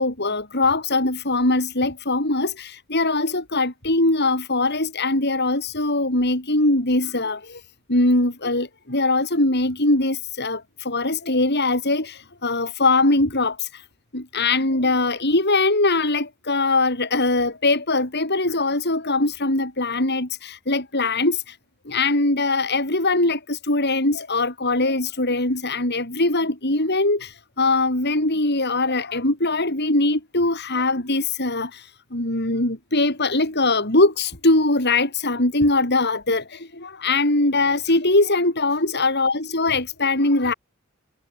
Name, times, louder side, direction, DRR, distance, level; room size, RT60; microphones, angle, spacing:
voice 1, 0.0-7.6 7.9-13.8 14.1-21.6 21.9-40.5, left 2 dB, 55° left, 7.6 m, -21 dB
head